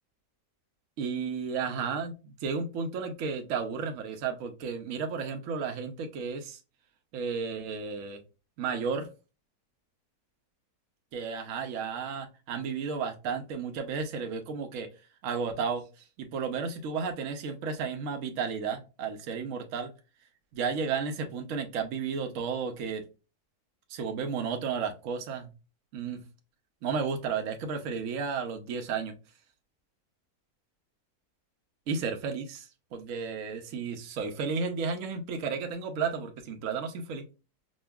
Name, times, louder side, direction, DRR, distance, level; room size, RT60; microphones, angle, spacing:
voice 1, 1.0-6.6 7.1-8.2 8.6-9.1 11.1-14.9 15.2-15.8 16.2-19.9 20.5-23.1 23.9-25.5 25.9-26.2 26.8-29.1 31.9-37.2, right 5 dB, 65° right, 4 dB, 1.0 m, -33 dB
5.2 x 2.3 x 2.2 m, 0.30 s
omnidirectional pair, 1.6 m